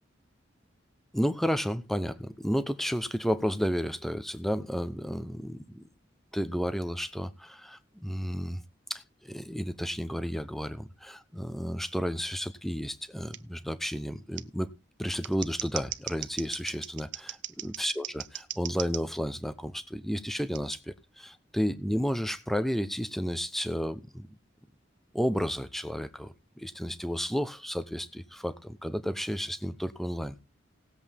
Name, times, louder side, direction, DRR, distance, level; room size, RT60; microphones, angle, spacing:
voice 1, 1.1-5.8 6.3-8.6 8.9-14.7 15.0-17.4 17.6-24.3 25.1-30.4, equal, ahead, 0.8 m, -32 dB
Scissors, 13.3-13.4 14.4-14.5 15.1-19.0 20.5-20.8, right 13 dB, 70° right, 0.8 m, -38 dB
18.5 x 7.9 x 3.6 m
head